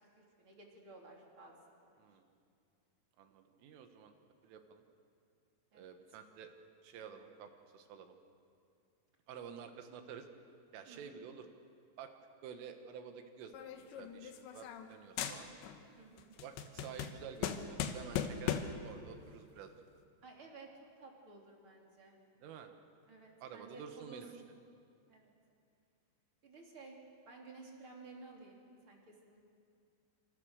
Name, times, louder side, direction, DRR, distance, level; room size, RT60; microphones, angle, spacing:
voice 1, 0.2-1.6 1.9-2.0 5.7-5.9 10.9-11.2 16.0-16.4 20.2-20.7 21.0-22.2 23.1-24.5 25.1-25.3 26.4-27.0 27.3-29.4, right 3 dB, 30° right, -1 dB, 3.4 m, -55 dB
voice 2, 3.2-4.1 4.4-4.8 5.7-6.5 6.8-8.2 9.3-10.3 10.7-11.4 12.0-12.1 12.4-15.5 16.4-18.5 18.8-19.7 22.4-22.7 23.4-24.3, right 7 dB, 80° right, 6 dB, 4.1 m, -50 dB
sound 1, 13.5-14.9 15.2-15.8 16.2-18.9, left 8 dB, 70° left, 3.2 m, -39 dB
28.0 x 26.5 x 6.6 m, 2.4 s
omnidirectional pair, 5.8 m